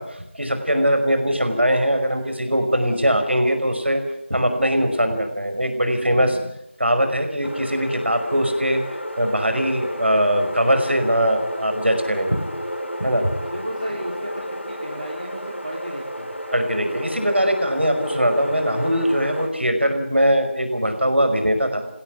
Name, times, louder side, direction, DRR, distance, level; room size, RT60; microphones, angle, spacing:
voice 1, 0.0-4.0 4.3-6.4 6.8-8.8 9.2-12.4 13.0-13.3 16.5-21.9, equal, 65° right, 6 dB, 5.3 m, -21 dB
sound 1, 7.4-19.5, equal, 80° left, 3.8 m, -31 dB
voice 2, 13.4-16.3, equal, 40° right, 1 dB, 2.3 m, -34 dB
20.5 x 17.0 x 9.4 m, 0.83 s
figure-of-eight pair, 180°, 7 cm